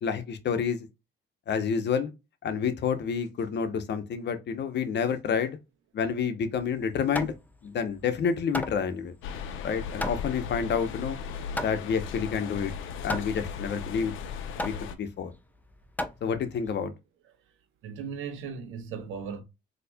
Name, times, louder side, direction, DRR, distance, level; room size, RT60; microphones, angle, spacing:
voice 1, 0.0-0.9 1.5-2.1 2.4-5.6 5.9-7.3 7.6-9.1 9.6-11.2 11.6-12.7 13.0-14.1 14.6-15.3 16.2-16.9, left 6 dB, 60° left, 0.8 m, -29 dB
Hammer, 6.6-16.8, left 1 dB, 10° left, 0.5 m, -38 dB
sound 1, 9.2-14.9, left 6 dB, 90° left, 0.6 m, -37 dB
voice 2, 17.8-19.4, right 6 dB, 80° right, 0.9 m, -37 dB
4.1 x 2.8 x 2.2 m
cardioid pair, 90°, 20 cm